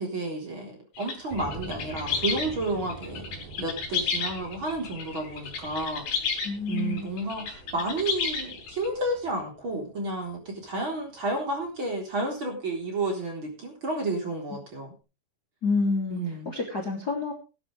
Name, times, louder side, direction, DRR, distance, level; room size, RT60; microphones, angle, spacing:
voice 1, 0.0-3.3 3.6-6.1 6.7-14.9 16.1-16.5, right 2 dB, 30° right, 1 dB, 4.3 m, -31 dB
sound 1, 1.0-8.9, left 6 dB, 70° left, 4.7 m, -32 dB
sound 2, 1.3-12.1, right 4 dB, 55° right, 5.0 m, -46 dB
voice 2, 6.4-7.1 15.6-16.2 16.4-17.3, left 4 dB, 30° left, 1 dB, 2.7 m, -28 dB
19.5 x 10.5 x 3.4 m, 0.31 s
omnidirectional pair, 4.5 m